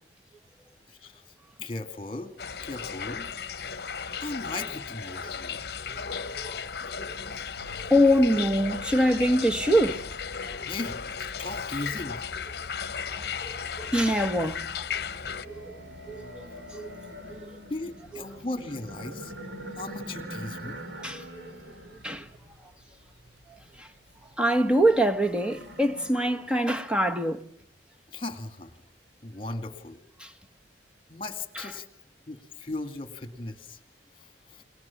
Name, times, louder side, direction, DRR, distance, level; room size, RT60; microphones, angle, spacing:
voice 1, 0.9-1.2 1.6-2.3 2.6-3.3 4.2-5.6 6.8-6.9 7.3-7.4 10.7-12.2 17.7-19.3 19.7-20.8 28.1-28.8 29.2-30.0 31.1-31.9 32.2-33.8 34.2-34.6, left 2 dB, 30° left, 2.3 m, -37 dB
sound 1, 2.4-15.5, left 6 dB, 60° left, 1.0 m, -35 dB
voice 2, 5.9-6.6 7.1-7.2 7.8-10.1 13.1-14.9 15.4-15.8 16.1-17.0 17.3-17.4 21.0-21.5 22.0-22.3 23.8-23.9 24.4-27.4 30.2-30.3 31.5-31.7, equal, 5° right, 1.3 m, -25 dB
sound 2, 7.5-22.6, left 2 dB, 40° right, 5.9 m, -51 dB
sound 3, 14.1-26.1, equal, 75° right, 4.3 m, -44 dB
29.5 x 22.5 x 7.2 m
head